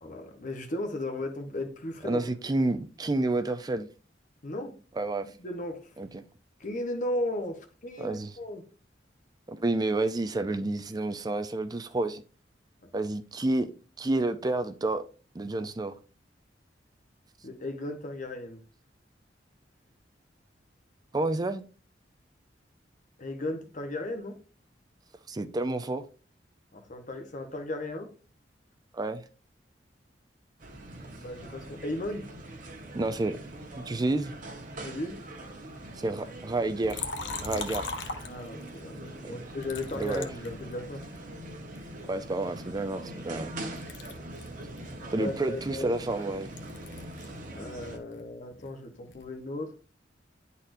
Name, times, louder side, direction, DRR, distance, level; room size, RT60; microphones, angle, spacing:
voice 1, 0.0-2.2 4.4-4.8 5.4-5.9 6.6-8.6 17.4-18.6 23.2-24.4 26.7-28.1 31.2-32.3 34.8-35.2 38.2-41.0 45.2-45.9 47.5-49.7, left 1 dB, 45° left, 0.9 m, -36 dB
voice 2, 2.0-3.9 5.0-5.3 6.0-6.2 8.0-8.4 9.5-12.2 12.9-13.7 14.0-15.0 15.3-15.9 21.1-21.6 25.3-26.0 28.9-29.2 32.9-33.4 33.8-34.3 36.0-37.1 37.4-37.9 39.2-39.4 39.9-40.3 42.0-43.5 45.1-46.5, right 2 dB, 20° right, 0.4 m, -29 dB
sound 1, 30.6-48.0, right 1 dB, 50° right, 1.2 m, -43 dB
Liquid, 36.8-38.8 39.6-41.2 41.7-43.5 43.7-47.4 47.7-49.3, left 4 dB, 85° left, 0.8 m, -41 dB
10.0 x 4.1 x 2.6 m
head